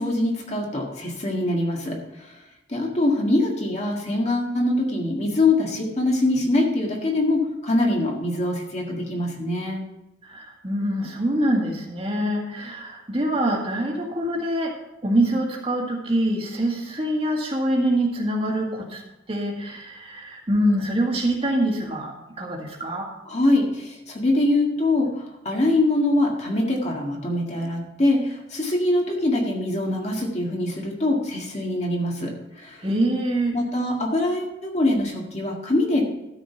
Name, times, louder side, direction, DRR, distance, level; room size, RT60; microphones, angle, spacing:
voice 1, 0.0-2.3 2.7-9.8 23.3-32.8 33.5-36.0, left 2 dB, 35° left, -1 dB, 1.8 m, -23 dB
voice 2, 10.2-14.7 15.0-19.0 19.3-23.1 32.8-33.6, right 1 dB, 30° right, -1 dB, 1.9 m, -24 dB
13.0 x 5.2 x 5.8 m, 0.94 s
head